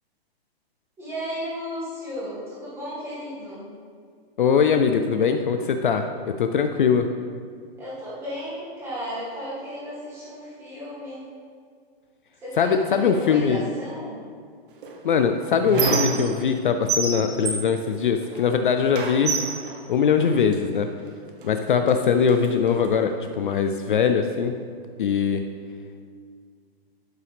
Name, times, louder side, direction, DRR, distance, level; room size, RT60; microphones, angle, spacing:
voice 1, 1.0-3.7 7.8-11.3 12.4-14.1, equal, 10° right, -9 dB, 2.0 m, -34 dB
voice 2, 4.4-6.1 6.4-7.1 12.6-13.6 15.0-19.3 19.9-20.9 21.4-24.6 25.0-25.4, left 6 dB, 55° left, 7 dB, 0.5 m, -21 dB
Squeak, 14.8-16.6 16.9-18.5 18.9-20.6 21.4-21.5 21.9-22.9, right 4 dB, 55° right, 1.1 m, -28 dB
11.5 x 5.6 x 3.4 m, 2.1 s
hypercardioid pair, 170°, 31 cm